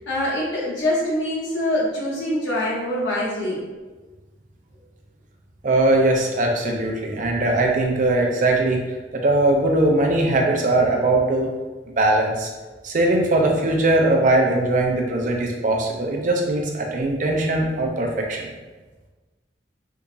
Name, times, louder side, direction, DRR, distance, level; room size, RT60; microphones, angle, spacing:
voice 1, 0.1-3.6, left 1 dB, 90° left, -5 dB, 0.8 m, -24 dB
voice 2, 5.6-8.8 9.1-11.5 12.0-12.5 12.8-18.5, right 2 dB, 45° right, 0 dB, 0.5 m, -20 dB
3.5 x 2.8 x 2.6 m, 1.3 s
head